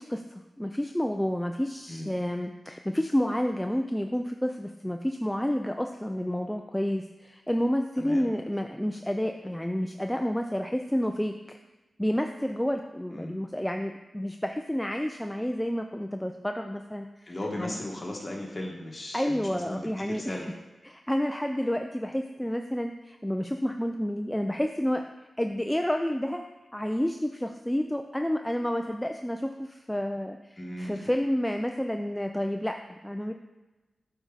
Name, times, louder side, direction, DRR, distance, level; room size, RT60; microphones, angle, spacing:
voice 1, 0.0-11.6 12.0-17.7 19.1-20.5 20.8-25.0 25.4-26.4 26.7-30.4 30.8-33.3, equal, 5° left, 4 dB, 0.4 m, -30 dB
voice 2, 8.0-8.3 13.1-13.3 17.3-20.5 30.6-31.0, left 1 dB, 30° left, -1 dB, 1.7 m, -37 dB
8.1 x 4.7 x 4.0 m, 1.1 s
cardioid pair, 60°, 0 cm